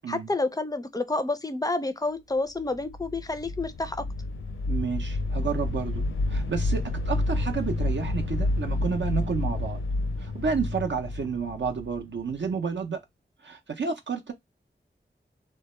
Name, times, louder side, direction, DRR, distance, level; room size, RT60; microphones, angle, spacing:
voice 1, 0.1-4.1, left 2 dB, 20° left, 0.4 m, -29 dB
sound 1, 2.7-12.5, left 2 dB, 85° left, 0.5 m, -29 dB
voice 2, 4.7-9.8 10.2-13.0 13.4-14.3, right 5 dB, 65° right, 0.5 m, -31 dB
2.2 x 2.1 x 2.9 m
wide cardioid pair, 40°, 21 cm